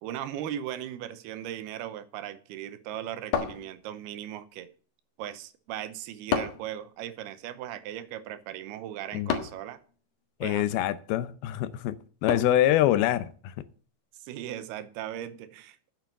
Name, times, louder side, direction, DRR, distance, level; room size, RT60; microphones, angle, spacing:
voice 1, 0.0-4.7 5.2-9.8 10.4-10.7 14.2-15.9, right 11 dB, 80° right, 2.8 m, -38 dB
sound 1, 3.3-4.2 6.3-6.8 9.3-9.7 12.3-12.7, left 7 dB, 60° left, 2.8 m, -30 dB
voice 2, 10.4-12.0 12.2-13.5, left 12 dB, 80° left, 2.5 m, -25 dB
9.2 x 7.2 x 8.9 m
omnidirectional pair, 4.7 m